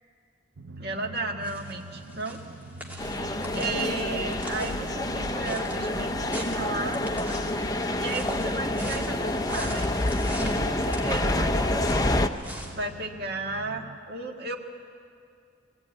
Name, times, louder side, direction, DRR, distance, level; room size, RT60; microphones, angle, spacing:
Drum, 0.5-14.0, right 3 dB, 85° right, 0.7 m, -45 dB
voice 1, 0.8-2.4 2.9-7.0 7.5-9.9 10.3-14.6, right 3 dB, 60° right, 1 dB, 1.7 m, -35 dB
sound 1, 1.4-12.7, equal, 10° right, 2.7 m, -43 dB
sound 2, 3.0-12.3, left 1 dB, 20° left, 0.7 m, -28 dB
20.0 x 16.5 x 9.3 m, 2.4 s
head